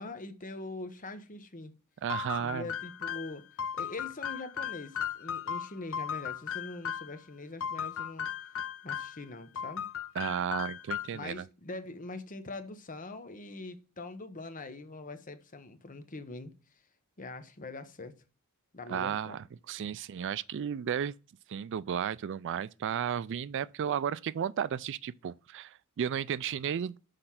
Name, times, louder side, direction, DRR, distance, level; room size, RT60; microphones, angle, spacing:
voice 1, 0.0-1.7 2.4-3.4 3.7-8.3 8.8-9.9 11.1-16.5 17.2-18.1 18.7-19.4, left 2 dB, 35° left, 1.0 m, -43 dB
voice 2, 2.0-2.7 10.2-11.5 18.9-21.1 21.5-27.0, right 8 dB, 55° right, 0.3 m, -33 dB
sound 1, 2.1-7.2 7.6-9.2 9.6-11.3, left 8 dB, 65° left, 0.6 m, -37 dB
6.6 x 5.3 x 5.7 m
head